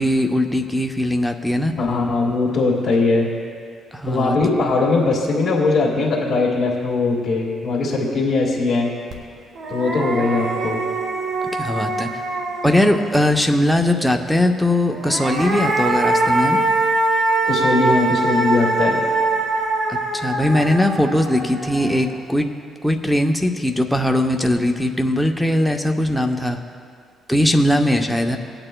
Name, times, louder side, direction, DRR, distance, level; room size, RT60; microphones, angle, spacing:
voice 1, 0.0-1.7 3.9-4.4 11.5-12.1 12.6-16.6 19.9-22.5 22.8-26.6 27.3-28.4, left 1 dB, ahead, 3 dB, 0.8 m, -20 dB
voice 2, 1.8-3.3 4.1-8.9 9.7-10.8 17.5-19.1, left 3 dB, 50° left, -8 dB, 1.9 m, -20 dB
sound 1, 9.1-9.2 9.6-13.2 14.9-22.2, right 2 dB, 60° right, 1.5 m, -22 dB
19.5 x 8.8 x 2.3 m, 2.2 s
cardioid pair, 90°, 0 cm